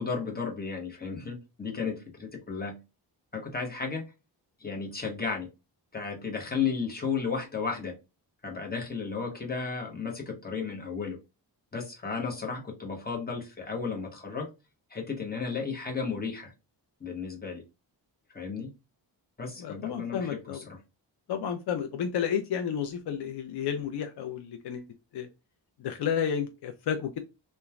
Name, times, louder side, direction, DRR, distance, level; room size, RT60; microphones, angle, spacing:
voice 1, 0.0-2.8 3.3-4.0 4.6-5.5 5.9-7.9 8.4-11.2 11.7-14.5 14.9-16.5 17.0-17.6 18.3-18.7 19.4-20.8, left 5 dB, 20° left, 0.9 m, -33 dB
voice 2, 19.6-20.7 21.3-24.9 25.1-25.3 25.8-27.2, left 8 dB, 65° left, 0.5 m, -31 dB
2.9 x 2.2 x 2.3 m
wide cardioid pair, 130°, 43 cm